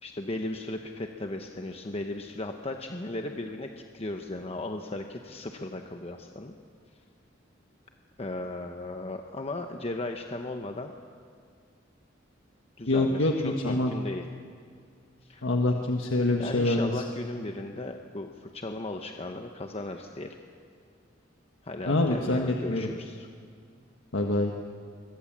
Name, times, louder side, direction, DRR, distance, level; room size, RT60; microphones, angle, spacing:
voice 1, 0.0-6.5 8.2-10.9 12.8-14.3 15.2-15.5 16.4-20.4 21.6-23.3, left 2 dB, 30° left, 4 dB, 1.0 m, -36 dB
voice 2, 12.9-13.9 15.4-17.0 21.9-22.9 24.1-24.5, left 2 dB, 90° left, 2 dB, 1.5 m, -25 dB
25.5 x 22.5 x 7.5 m, 2.2 s
head